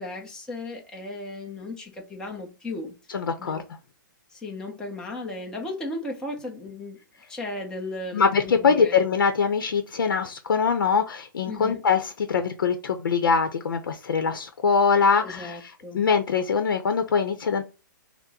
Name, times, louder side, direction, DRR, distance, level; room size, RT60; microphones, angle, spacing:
voice 1, 0.0-2.9 3.4-3.6 4.3-7.0 7.3-8.9 11.5-11.8 15.2-16.1, left 2 dB, 5° left, 0.8 m, -35 dB
voice 2, 3.1-3.6 8.1-17.6, left 5 dB, 85° left, 0.7 m, -23 dB
5.9 x 2.1 x 4.2 m
hypercardioid pair, 155°, 11 cm